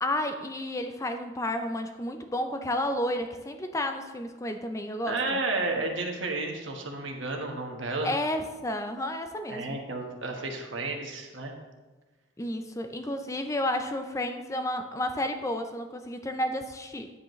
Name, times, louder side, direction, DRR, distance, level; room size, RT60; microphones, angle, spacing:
voice 1, 0.0-5.4 8.0-9.8 12.4-17.1, left 1 dB, 15° left, 6 dB, 0.4 m, -31 dB
voice 2, 5.1-8.1 9.5-11.5, right 2 dB, 70° right, 2 dB, 1.3 m, -32 dB
9.6 x 8.0 x 3.1 m, 1.3 s
head